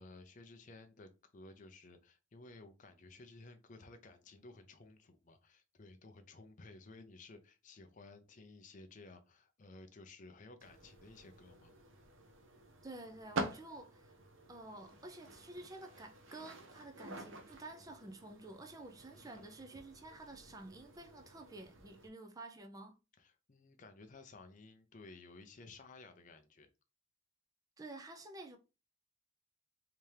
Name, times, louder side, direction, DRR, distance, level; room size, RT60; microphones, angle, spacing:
voice 1, 0.0-11.8 19.1-19.6 23.2-26.7, left 3 dB, 35° left, 0.5 m, -56 dB
sound 1, 10.6-22.1, right 2 dB, 65° right, 0.7 m, -48 dB
voice 2, 12.8-14.1 14.5-23.0 27.8-28.6, right 2 dB, 15° right, 0.4 m, -50 dB
3.4 x 2.8 x 3.2 m
head